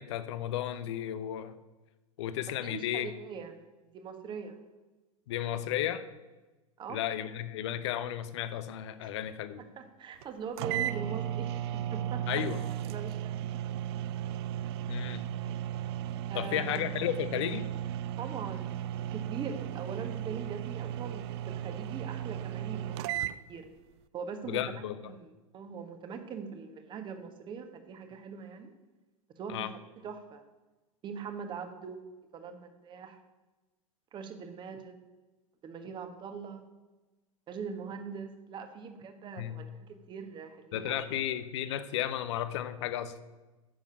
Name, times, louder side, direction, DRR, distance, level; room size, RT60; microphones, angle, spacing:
voice 1, 0.0-1.5 2.2-3.1 5.3-6.0 6.9-9.6 12.3-12.6 14.9-15.3 16.3-17.7 24.4-25.0 29.5-29.7 39.4-39.6 40.7-43.1, left 11 dB, 50° left, 13 dB, 0.9 m, -33 dB
voice 2, 2.6-3.6 3.9-4.6 6.8-7.0 9.0-9.1 9.6-12.2 12.8-13.6 16.3-16.8 18.2-18.8 19.1-23.7 24.1-28.7 29.4-29.7 30.0-30.4 31.0-32.0 32.3-33.2 34.1-35.0 35.6-36.6 37.5-41.0, right 6 dB, 25° right, 7 dB, 1.4 m, -42 dB
sound 1, 10.2-10.3 10.6-23.4, right 11 dB, 45° right, 0.5 m, -35 dB
10.5 x 7.2 x 9.1 m, 1.2 s
figure-of-eight pair, 90°, 18 cm